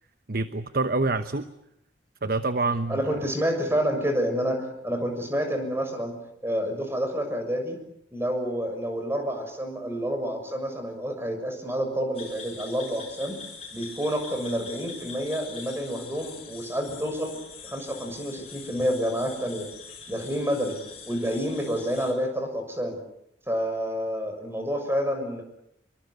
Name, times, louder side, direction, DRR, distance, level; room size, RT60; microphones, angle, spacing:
voice 1, 0.3-1.5 2.2-3.3, right 3 dB, 55° right, 10 dB, 1.1 m, -27 dB
voice 2, 2.9-6.1 6.4-7.8 8.1-13.3 13.7-19.7 20.1-20.8 21.1-23.0 23.5-25.4, equal, 15° right, 5 dB, 6.5 m, -29 dB
sound 1, 12.1-22.1, left 5 dB, 35° left, 7.8 m, -43 dB
27.5 x 24.0 x 8.1 m, 0.79 s
head